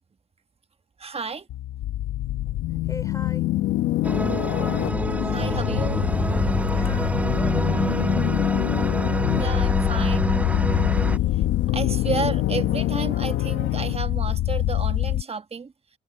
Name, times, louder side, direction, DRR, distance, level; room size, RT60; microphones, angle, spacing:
voice 1, 1.0-1.5 5.2-6.0 9.4-10.4 11.7-15.7, right 5 dB, 30° right, 1.3 m, -32 dB
sound 1, 1.5-15.2, left 14 dB, 85° left, 1.2 m, -24 dB
voice 2, 2.7-3.5 6.6-8.3, left 2 dB, 15° left, 4.5 m, -40 dB
sound 2, 4.0-11.2, right 2 dB, 5° right, 0.3 m, -26 dB
open air
cardioid pair, 90°, 20 cm